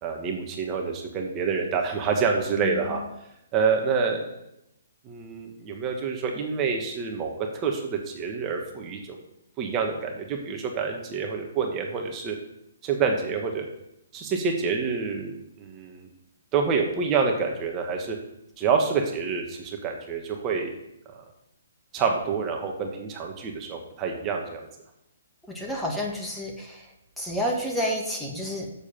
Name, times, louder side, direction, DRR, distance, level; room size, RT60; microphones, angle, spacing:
voice 1, 0.0-3.0 3.5-4.3 5.0-9.2 9.6-12.4 12.8-13.7 14.1-16.1 16.5-18.2 18.6-20.8 21.1-21.2 21.9-24.7, right 5 dB, 25° right, 2 dB, 1.3 m, -27 dB
voice 2, 25.5-26.9 27.2-28.7, equal, 5° left, -1 dB, 1.4 m, -30 dB
7.0 x 6.9 x 5.8 m, 0.82 s
hypercardioid pair, 140°, 0 cm